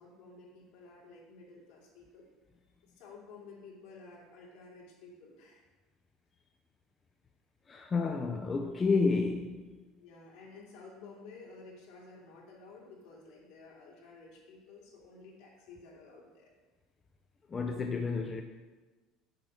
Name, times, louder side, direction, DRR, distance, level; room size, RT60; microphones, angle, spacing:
voice 1, 0.0-2.2 2.8-5.7 9.9-16.5, left 3 dB, 75° left, 2.9 m, -53 dB
voice 2, 7.7-9.6 17.5-18.4, left 4 dB, 20° left, 0.5 m, -30 dB
7.7 x 4.8 x 6.5 m
cardioid pair, 145°, 0 cm